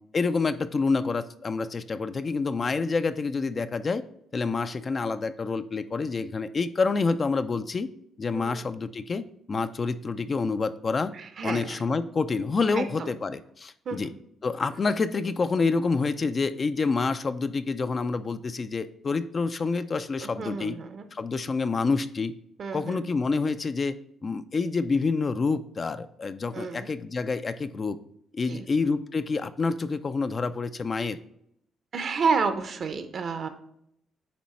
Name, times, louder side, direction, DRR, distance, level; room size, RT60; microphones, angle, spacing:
voice 1, 0.1-4.0 4.3-7.9 8.2-11.1 11.4-14.1 14.4-20.8 21.1-22.3 22.7-28.0 28.3-31.2, left 4 dB, 35° left, 11 dB, 0.4 m, -27 dB
voice 2, 8.3-8.7 11.1-11.8 12.7-13.1 13.8-14.2 20.2-21.0 22.6-23.0 26.5-26.9 28.5-28.7 31.9-33.5, right 5 dB, 55° right, 9 dB, 0.8 m, -30 dB
8.6 x 3.1 x 4.2 m, 0.72 s
cardioid pair, 90°, 0 cm